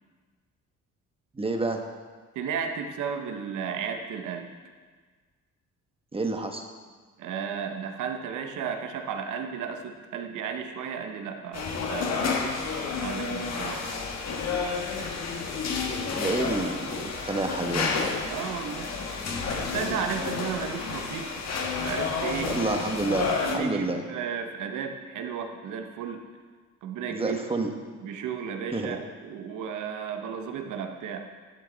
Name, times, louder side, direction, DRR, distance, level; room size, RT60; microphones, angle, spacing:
voice 1, 1.3-1.8 6.1-6.6 16.1-18.1 22.5-23.3 23.5-24.0 27.1-27.7 28.7-29.0, right 2 dB, 20° right, 4 dB, 1.2 m, -29 dB
voice 2, 2.3-4.5 7.2-12.3 13.0-13.8 18.2-18.9 19.5-21.3 21.8-22.6 23.4-26.3 26.8-27.4 28.0-31.3, right 7 dB, 80° right, 5 dB, 1.0 m, -34 dB
sound 1, 11.5-23.6, left 4 dB, 60° left, 1.4 m, -30 dB
12.0 x 7.5 x 4.0 m, 1.5 s
cardioid pair, 90°, 30 cm